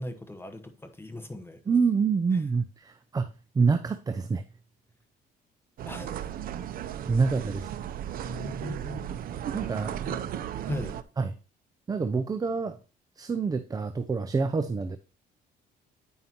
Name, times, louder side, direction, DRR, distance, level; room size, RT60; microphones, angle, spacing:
voice 1, 0.0-1.6 5.8-6.2 8.2-9.2 10.0-10.2 10.7-11.0, left 1 dB, 15° left, 1.1 m, -38 dB
voice 2, 1.7-3.3 3.5-4.4 7.1-7.7 9.5-10.0 11.2-11.3 11.9-12.8 13.2-15.0, right 5 dB, 20° right, 0.6 m, -26 dB
sound 1, 5.8-11.0, right 10 dB, 60° right, 0.7 m, -35 dB
9.1 x 5.6 x 2.8 m
cardioid pair, 110°, 17 cm